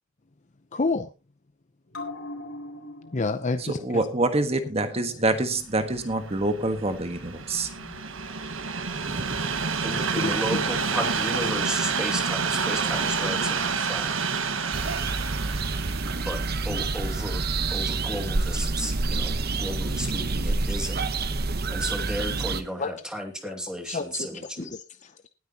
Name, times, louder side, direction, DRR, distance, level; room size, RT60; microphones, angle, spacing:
voice 1, 0.7-1.1 3.1-3.8 10.2-10.3 22.8-22.9 23.4-23.5 23.9-24.3 24.6-25.3, left 3 dB, 35° left, 10 dB, 0.7 m, -29 dB
sound 1, 1.9-8.8 9.2-9.3, left 2 dB, 80° left, 3.5 m, -44 dB
voice 2, 3.6-7.7 9.1-9.5, right 2 dB, 30° right, 8 dB, 1.4 m, -26 dB
Train, 5.8-19.0 19.7-19.8, right 5 dB, 75° right, 1.6 m, -29 dB
voice 3, 9.8-14.1 16.2-17.4 17.7-21.0 21.7-24.8, equal, 5° right, 3 dB, 2.4 m, -34 dB
sound 2, 14.7-22.6, right 3 dB, 50° right, 1.0 m, -28 dB
19.5 x 9.5 x 3.0 m, 0.29 s
head